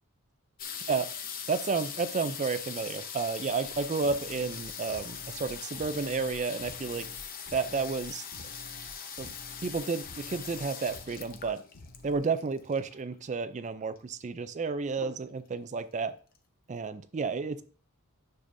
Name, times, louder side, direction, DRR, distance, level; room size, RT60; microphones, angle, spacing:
sound 1, 0.6-13.1 14.0-14.1 14.2-14.6 15.0-15.5 16.1-16.2 16.4-16.5, left 7 dB, 40° left, 0.9 m, -41 dB
voice 1, 1.5-7.1 7.5-8.2 9.2-9.3 9.6-11.6 12.0-16.1 16.7-17.6, right 4 dB, 30° right, 12 dB, 0.4 m, -31 dB
sound 2, 3.6-8.9 9.2-9.8 10.0-10.6 10.9-11.5 11.7-12.1, left 1 dB, 65° left, 1.5 m, -50 dB
10.0 x 6.8 x 2.6 m, 0.39 s
head